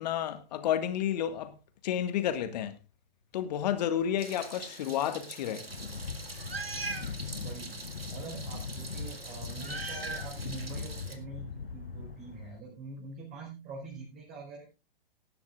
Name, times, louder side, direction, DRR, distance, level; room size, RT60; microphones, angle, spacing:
voice 1, 0.0-1.5 1.8-2.7 3.3-5.7, left 10 dB, 45° left, 1.7 m, -31 dB
Meow, 4.2-11.2, right 3 dB, 85° right, 1.9 m, -42 dB
sound 1, 5.7-12.6, left 5 dB, 80° left, 1.1 m, -40 dB
voice 2, 7.4-7.8 8.1-14.7, right 3 dB, 25° right, 4.7 m, -44 dB
18.5 x 10.5 x 2.4 m
figure-of-eight pair, 110°, 29 cm